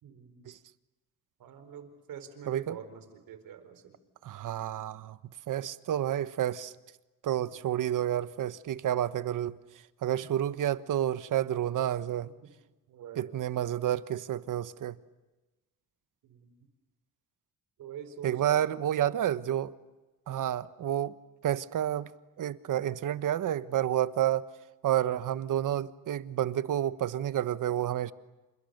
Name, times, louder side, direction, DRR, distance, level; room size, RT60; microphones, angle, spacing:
voice 1, 0.0-0.5 1.4-4.0 7.3-7.6 12.9-13.3 16.2-16.5 17.8-18.6 20.3-20.6, right 8 dB, 85° right, 4.5 m, -46 dB
voice 2, 2.5-2.8 4.2-5.2 5.5-6.7 7.2-9.6 10.0-12.3 13.2-15.0 18.2-19.7 20.3-21.1 21.4-22.1 22.4-24.4 24.8-28.1, right 11 dB, 70° right, 1.2 m, -30 dB
30.0 x 28.0 x 6.8 m
cardioid pair, 95°, 33 cm